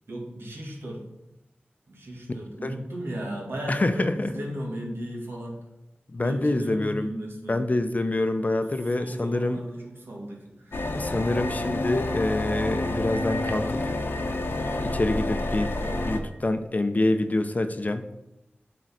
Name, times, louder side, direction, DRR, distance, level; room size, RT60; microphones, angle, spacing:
voice 1, 0.1-1.0 1.9-5.6 6.2-7.6 9.0-10.8, right 1 dB, 75° right, -2 dB, 2.1 m, -36 dB
voice 2, 3.7-4.4 6.1-7.1 7.5-9.6 11.0-13.9 14.8-15.8 16.1-18.1, left 2 dB, 40° left, 8 dB, 0.7 m, -26 dB
sound 1, 10.7-16.2, left 2 dB, 70° left, 0.9 m, -29 dB
7.7 x 3.9 x 6.3 m, 0.90 s
wide cardioid pair, 50°, 4 cm